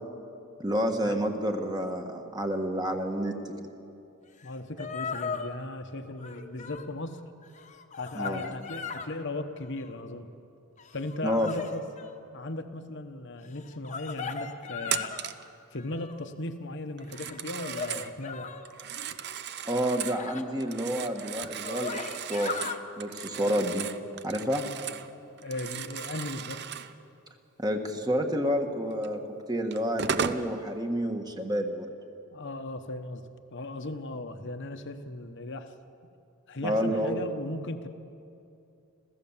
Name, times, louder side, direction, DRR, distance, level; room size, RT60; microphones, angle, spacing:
voice 1, 0.6-3.5 8.1-8.4 11.2-11.5 19.6-22.5 23.0-23.9 24.2-24.7 27.6-29.2 29.5-31.9 36.6-37.2, equal, 20° right, 4 dB, 1.5 m, -29 dB
voice 2, 4.4-7.2 7.9-10.3 10.9-11.8 12.3-15.1 15.7-18.5 25.4-26.6 32.3-33.2 33.5-35.7 36.5-37.9, left 2 dB, 55° left, 8 dB, 1.1 m, -37 dB
sound 1, 4.4-4.5 4.8-5.5 6.2-6.9 7.4-9.1 9.6-10.1 10.8-12.1 13.6-15.3 15.8-16.3 17.0-18.7 20.2-20.4 21.1-21.2 21.5-22.8 23.4-23.6, left 5 dB, 35° left, 1.1 m, -38 dB
Telephone, 14.9-15.5 17.0-18.1 18.7-20.2 20.6-25.1 25.4-26.9 29.0-29.1 29.7-30.5, right 7 dB, 50° right, 0.7 m, -36 dB
26.5 x 15.5 x 7.3 m, 2.7 s
head